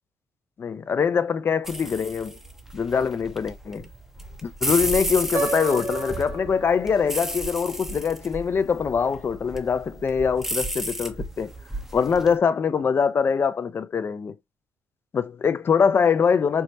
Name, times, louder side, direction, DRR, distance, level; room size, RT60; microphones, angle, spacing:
voice 1, 0.6-2.4 2.7-3.9 4.4-11.5 11.9-14.3 15.1-16.6, left 6 dB, 40° left, 0.5 m, -23 dB
sound 1, 1.6-12.3, right 1 dB, 5° right, 0.7 m, -33 dB
Piano, 5.3-7.3, right 3 dB, 65° right, 2.2 m, -31 dB
4.6 x 2.1 x 2.6 m
supercardioid pair, 70°, 6 cm